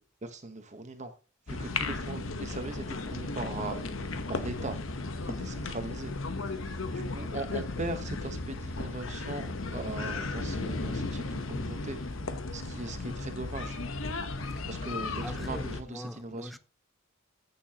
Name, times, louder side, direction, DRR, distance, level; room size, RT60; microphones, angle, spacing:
voice 1, 0.2-1.1 1.5-3.8 4.3-4.8 5.2-6.1 6.5-12.0 12.5-13.8 14.7-16.5, right 2 dB, 35° right, 1.1 m, -39 dB
sound 1, 1.5-15.8, left 3 dB, 65° left, 0.9 m, -35 dB
voice 2, 15.2-16.6, equal, ahead, 0.5 m, -42 dB
14.5 x 6.9 x 2.9 m
head